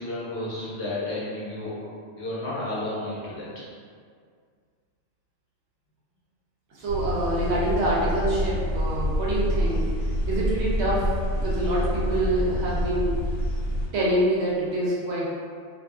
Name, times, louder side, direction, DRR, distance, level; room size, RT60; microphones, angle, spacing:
voice 1, 0.0-1.7 2.2-3.5, left 1 dB, 65° left, -8 dB, 0.9 m, -32 dB
voice 2, 6.7-9.9 10.3-13.2 13.9-15.3, right 1 dB, 65° right, -6 dB, 0.8 m, -26 dB
sound 1, 6.9-13.9, equal, 90° left, 1.0 m, -27 dB
2.4 x 2.2 x 2.3 m, 2.1 s
omnidirectional pair, 1.3 m